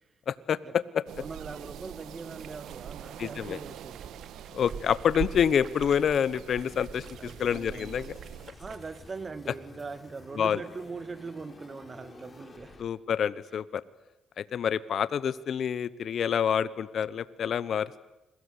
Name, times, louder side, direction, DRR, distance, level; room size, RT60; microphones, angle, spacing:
voice 1, 0.3-1.0 3.2-3.6 4.5-8.1 10.4-10.6 12.8-13.8 14.4-18.0, left 8 dB, 60° left, 1.1 m, -27 dB
sound 1, 1.1-8.5, right 10 dB, 85° right, 1.4 m, -45 dB
voice 2, 1.2-4.1 7.2-8.0 8.6-12.8, right 4 dB, 35° right, 2.0 m, -41 dB
sound 2, 2.2-9.1, right 7 dB, 60° right, 2.6 m, -44 dB
sound 3, 6.7-12.8, left 3 dB, 30° left, 5.6 m, -52 dB
30.0 x 22.5 x 8.4 m
cardioid pair, 90°, 0 cm